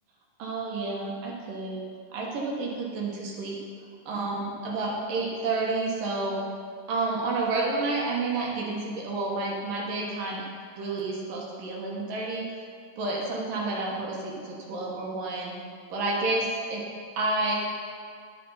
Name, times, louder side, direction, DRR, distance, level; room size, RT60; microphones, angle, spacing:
voice 1, 0.4-1.9 2.1-3.6 4.1-6.4 6.9-10.4 10.8-12.5 13.0-15.6 15.9-16.8 17.2-17.5, right 3 dB, 65° right, -3 dB, 2.7 m, -30 dB
10.0 x 9.5 x 5.5 m, 2.2 s
omnidirectional pair, 4.6 m